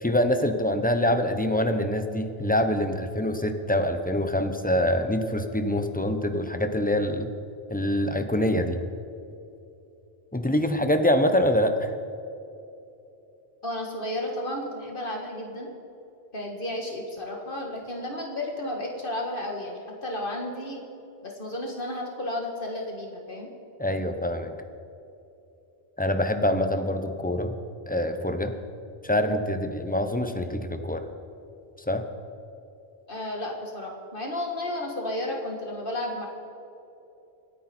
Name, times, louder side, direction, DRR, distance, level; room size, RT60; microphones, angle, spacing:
voice 1, 0.0-7.3 7.7-8.8 10.3-11.9 23.8-24.5 26.0-27.5 27.9-28.5 29.0-31.0 31.9-32.0, left 1 dB, 10° left, 7 dB, 0.9 m, -25 dB
voice 2, 13.6-15.7 16.3-20.8 21.2-23.5 33.1-36.3, left 1 dB, 55° left, 1 dB, 2.0 m, -33 dB
25.5 x 10.0 x 4.4 m, 2.9 s
omnidirectional pair, 1.1 m